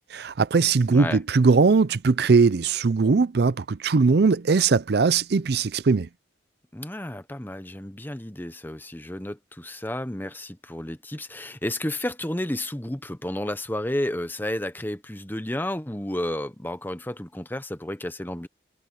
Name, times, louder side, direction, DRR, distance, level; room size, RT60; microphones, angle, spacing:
voice 1, 0.1-6.1, right 4 dB, 60° right, 0.5 m, -20 dB
voice 2, 0.9-1.2 6.7-18.5, left 1 dB, 10° left, 0.9 m, -31 dB
head